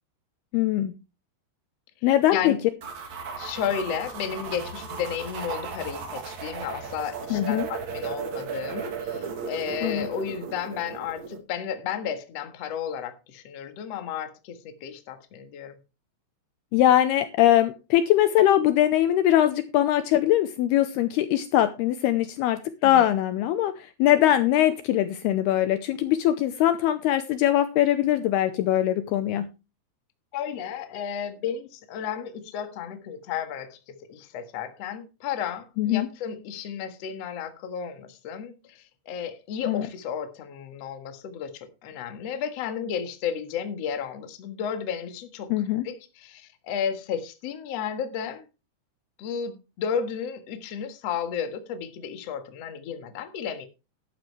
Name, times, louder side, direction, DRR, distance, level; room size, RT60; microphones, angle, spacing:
voice 1, 0.5-0.9 2.0-2.6 7.3-7.7 9.8-10.1 16.7-29.5 35.8-36.1 39.7-39.9 45.5-45.8, left 12 dB, 80° left, 2.5 m, -22 dB
voice 2, 2.0-2.6 3.4-15.8 22.8-23.1 30.3-33.8 34.1-45.5 45.8-48.5 49.2-53.6, left 8 dB, 55° left, 1.8 m, -33 dB
sound 1, 2.8-11.4, right 6 dB, 50° right, 2.8 m, -35 dB
12.0 x 11.5 x 3.2 m
omnidirectional pair, 5.1 m